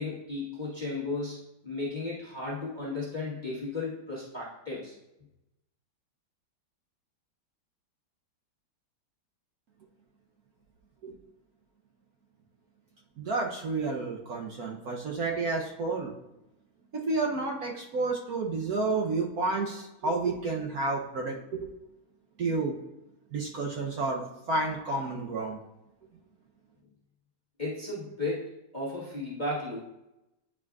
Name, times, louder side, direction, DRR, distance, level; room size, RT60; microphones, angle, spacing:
voice 1, 0.0-4.9 27.6-29.8, left 2 dB, 25° left, -6 dB, 1.2 m, -35 dB
voice 2, 13.2-16.1 16.9-21.7 22.4-22.7 23.3-25.6, right 3 dB, 60° right, 0 dB, 1.0 m, -30 dB
9.5 x 4.8 x 2.4 m, 0.89 s
omnidirectional pair, 2.3 m